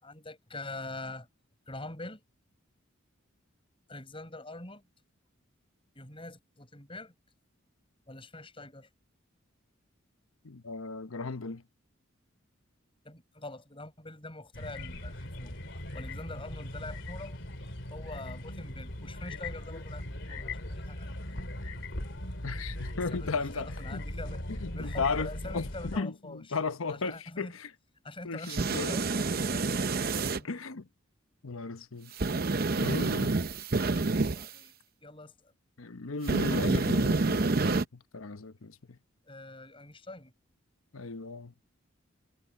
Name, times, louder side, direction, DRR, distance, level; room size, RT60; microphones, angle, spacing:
voice 1, 0.0-1.3 1.7-2.2 3.9-4.8 6.0-7.1 8.1-8.9 13.0-15.6 15.9-17.4 17.9-21.2 23.1-23.3 23.6-24.4 24.7-26.6 27.0-27.5 28.0-30.5 34.2-34.7 35.0-35.5 39.3-40.3, left 2 dB, 25° left, 7.0 m, -44 dB
voice 2, 10.4-11.6 22.4-24.0 24.6-27.7 28.2-29.0 30.4-30.9 31.4-32.1 32.5-33.4 35.8-39.0 40.9-41.5, left 4 dB, 85° left, 1.0 m, -36 dB
sound 1, 14.5-26.0, left 1 dB, 60° left, 3.4 m, -39 dB
sound 2, 28.5-30.4 32.2-34.5 36.3-37.8, right 3 dB, 45° right, 0.8 m, -28 dB
head